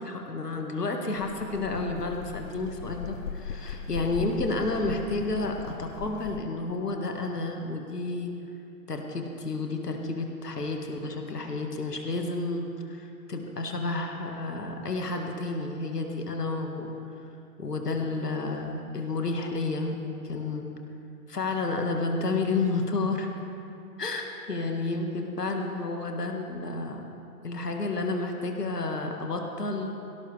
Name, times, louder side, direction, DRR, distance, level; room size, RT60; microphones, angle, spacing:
voice 1, 0.0-8.3 8.9-16.9 17.6-20.7 21.3-23.3 24.0-27.0 27.4-29.9, left 3 dB, 85° left, 3 dB, 1.9 m, -31 dB
sound 1, 1.1-6.4, left 7 dB, 55° left, 0.7 m, -39 dB
18.5 x 17.0 x 3.4 m, 2.7 s
figure-of-eight pair, 110°, 46 cm